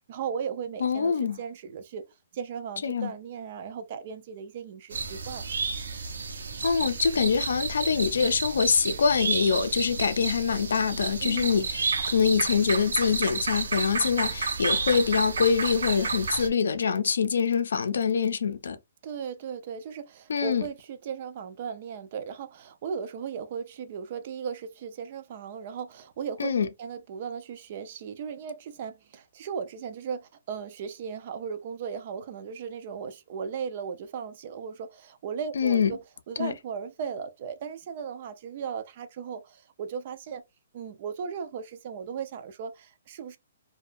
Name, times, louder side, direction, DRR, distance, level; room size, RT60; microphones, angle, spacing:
voice 1, 0.1-2.1 2.3-5.4 11.2-11.6 19.0-26.5 26.8-40.4 40.7-43.4, right 7 dB, 35° right, 0.3 m, -37 dB
voice 2, 0.8-1.4 2.8-3.1 6.6-18.8 20.3-20.6 26.4-26.7 35.6-35.9 36.4-36.5, left 6 dB, 75° left, 0.5 m, -25 dB
sound 1, 4.9-16.5, right 4 dB, 90° right, 0.6 m, -31 dB
2.6 x 2.2 x 2.4 m
hypercardioid pair, 175°, 0 cm